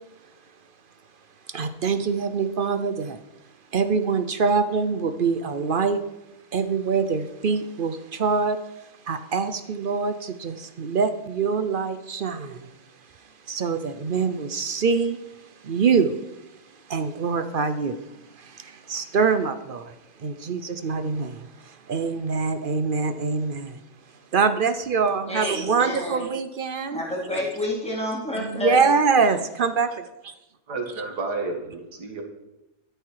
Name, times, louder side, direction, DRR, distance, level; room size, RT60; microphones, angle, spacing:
voice 1, 1.5-3.2 3.7-6.0 6.5-12.7 13.5-16.2 16.9-18.0 18.3-23.8 24.3-27.0 28.3-29.9, right 5 dB, 50° right, 10 dB, 0.6 m, -24 dB
voice 2, 25.3-26.2 26.9-28.8, left 1 dB, 5° left, -5 dB, 3.8 m, -29 dB
voice 3, 30.7-32.2, right 3 dB, 85° right, 4 dB, 2.4 m, -31 dB
12.5 x 10.0 x 4.8 m, 0.94 s
omnidirectional pair, 1.7 m